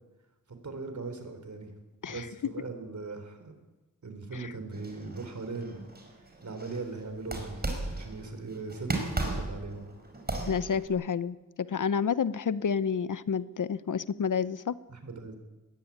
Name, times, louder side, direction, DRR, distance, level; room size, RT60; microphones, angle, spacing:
voice 1, 0.6-1.7 2.1-3.5 4.0-5.9 6.4-9.8 14.9-15.3, right 3 dB, 60° right, 7 dB, 4.1 m, -39 dB
sound 1, 4.7-6.8 7.2-8.3 8.7-10.9, right 2 dB, 30° right, 5.1 m, -36 dB
voice 2, 10.5-14.7, left 6 dB, 70° left, 16 dB, 0.8 m, -29 dB
21.0 x 16.0 x 9.6 m, 1.1 s
wide cardioid pair, 120°, 32 cm